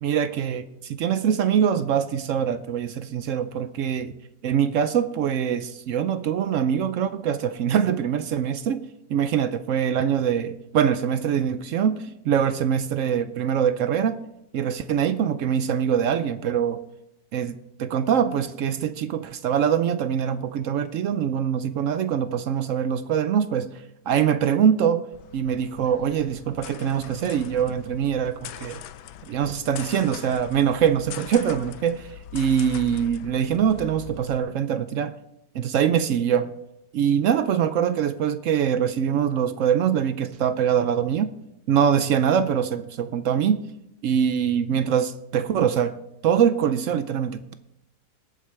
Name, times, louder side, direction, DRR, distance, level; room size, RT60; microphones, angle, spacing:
voice 1, 0.0-4.1 4.4-14.2 14.5-16.8 17.3-25.0 25.3-28.8 29.3-35.1 35.5-36.5 36.9-41.3 41.7-43.6 44.0-46.0 46.2-47.5, right 8 dB, 70° right, 0.7 m, -23 dB
sound 1, 25.1-34.4, left 12 dB, 80° left, 1.2 m, -42 dB
19.0 x 8.5 x 3.3 m
omnidirectional pair, 1.8 m